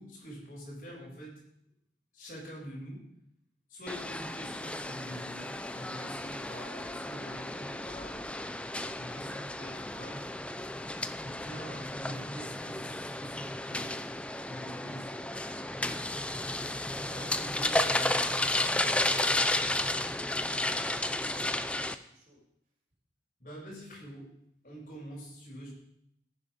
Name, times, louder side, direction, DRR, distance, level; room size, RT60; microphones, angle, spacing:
voice 1, 0.0-1.4 2.1-3.1 3.7-8.5 8.9-10.3 11.2-14.0 14.4-15.1 16.1-16.4 16.9-19.5 23.4-24.3 24.6-25.7, equal, 50° left, -4 dB, 7.0 m, -45 dB
sound 1, 3.9-21.9, left 1 dB, 5° left, 0.4 m, -33 dB
voice 2, 21.1-22.4, equal, 50° right, -9 dB, 5.1 m, -60 dB
14.5 x 10.0 x 5.2 m, 0.76 s
head